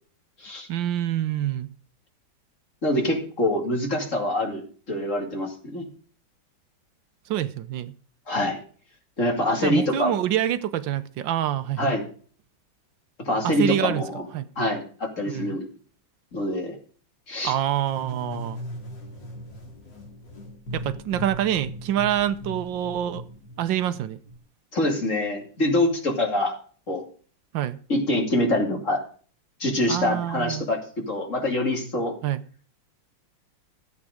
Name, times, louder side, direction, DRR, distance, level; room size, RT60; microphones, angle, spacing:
voice 1, 0.7-1.7 7.3-7.9 9.6-11.9 13.4-14.0 14.3-14.5 15.3-15.6 17.4-18.6 20.7-23.3 23.6-24.2 27.5-27.8 29.9-30.7 32.2-32.4, right 11 dB, 80° right, 1.5 m, -26 dB
voice 2, 2.8-4.6 4.9-5.9 8.3-8.6 9.2-10.2 11.8-12.1 13.2-14.2 14.6-15.7 16.3-16.8 17.3-17.5 24.7-26.6 26.9-27.0 27.9-29.0 29.6-32.1, left 1 dB, 40° left, 2.9 m, -25 dB
sound 1, 17.6-24.4, equal, 70° left, 3.5 m, -38 dB
13.5 x 8.4 x 5.0 m
omnidirectional pair, 2.1 m